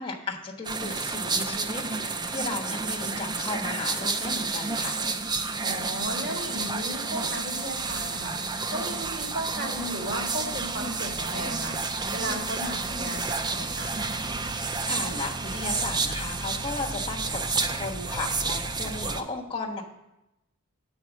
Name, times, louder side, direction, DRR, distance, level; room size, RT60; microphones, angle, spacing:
voice 1, 0.0-5.0 14.8-19.8, left 3 dB, 25° left, -2 dB, 1.2 m, -35 dB
sound 1, 0.6-19.2, right 4 dB, 20° right, 0.4 m, -30 dB
voice 2, 5.6-8.3 8.7-11.8 12.1-14.3, equal, 75° right, -7 dB, 2.7 m, -35 dB
9.4 x 4.4 x 7.1 m, 0.93 s
head